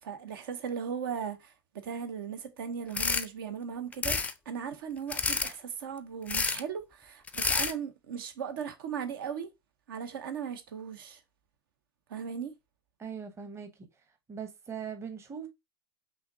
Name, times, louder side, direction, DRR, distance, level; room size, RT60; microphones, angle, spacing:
voice 1, 0.0-4.2 4.5-9.5 9.9-11.2 12.1-12.5, right 7 dB, 70° right, 0.8 m, -37 dB
sound 1, 2.9-3.3 3.9-4.3 5.1-5.5 6.3-6.6 7.3-7.7, left 4 dB, 10° left, 0.4 m, -29 dB
voice 2, 13.0-13.9 14.3-15.5, right 7 dB, 20° right, 0.9 m, -40 dB
5.5 x 2.7 x 2.7 m
hypercardioid pair, 95°, 12 cm